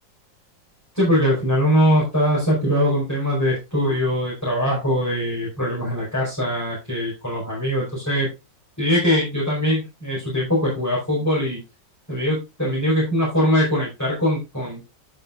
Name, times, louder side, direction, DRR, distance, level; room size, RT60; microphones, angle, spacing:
voice 1, 0.9-8.3 8.8-11.6 12.1-14.9, equal, 10° left, -6 dB, 5.0 m, -22 dB
11.0 x 7.9 x 2.5 m, 0.25 s
omnidirectional pair, 2.0 m